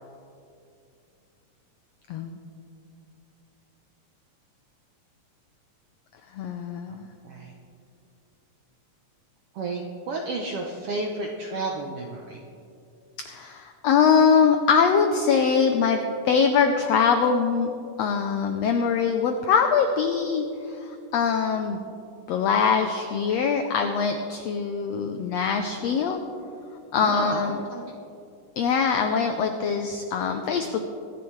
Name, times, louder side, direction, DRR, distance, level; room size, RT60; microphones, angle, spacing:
voice 1, 2.1-2.4 6.3-7.1 13.3-17.7 18.0-21.8 22.3-26.2 26.9-27.6 28.6-30.8, left 6 dB, 85° left, 5 dB, 1.4 m, -23 dB
voice 2, 9.5-12.4 27.0-27.8, right 3 dB, 75° right, 1 dB, 1.3 m, -31 dB
23.5 x 10.5 x 3.2 m, 2.6 s
omnidirectional pair, 3.8 m